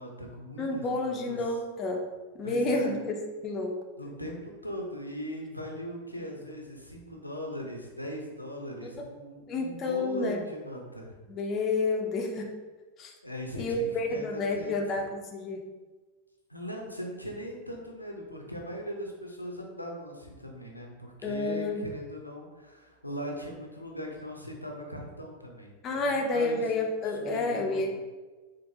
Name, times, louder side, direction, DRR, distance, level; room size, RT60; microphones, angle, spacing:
voice 1, 0.0-1.4 2.4-2.9 4.0-11.1 13.2-15.0 16.5-25.7 26.0-26.7 27.1-28.0, equal, 90° left, 0 dB, 0.6 m, -40 dB
voice 2, 0.6-2.0 2.3-3.2 3.4-3.8 9.5-10.4 11.3-12.5 13.0-13.1 13.6-15.6 21.2-21.8 25.8-28.0, left 2 dB, 30° left, 1 dB, 0.5 m, -30 dB
4.4 x 2.5 x 2.7 m, 1.3 s
figure-of-eight pair, 90°, 0 cm